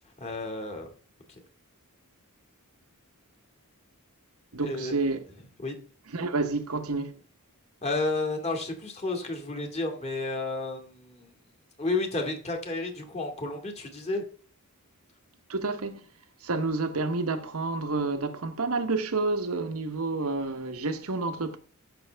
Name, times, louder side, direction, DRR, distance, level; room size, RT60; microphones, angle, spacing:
voice 1, 0.2-0.9 4.6-4.9 5.6-5.8 7.8-11.3 11.8-14.2, left 2 dB, 30° left, 2.1 m, -31 dB
voice 2, 4.5-5.2 6.1-7.1 15.5-16.0 16.4-21.6, right 3 dB, 75° right, 1.1 m, -29 dB
14.0 x 6.1 x 3.4 m
head